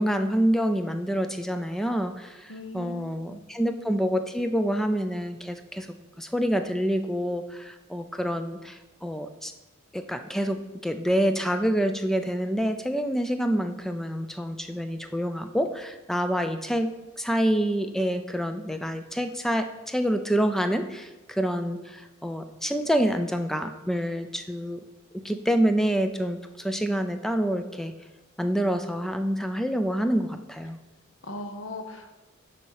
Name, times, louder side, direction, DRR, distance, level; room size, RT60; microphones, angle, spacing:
voice 1, 0.0-5.9 6.2-9.5 9.9-24.8 25.1-27.9 28.4-30.8, equal, ahead, 8 dB, 0.3 m, -27 dB
voice 2, 2.5-3.4 31.2-32.1, left 2 dB, 65° left, 6 dB, 0.8 m, -39 dB
6.8 x 4.2 x 6.4 m, 1.1 s
head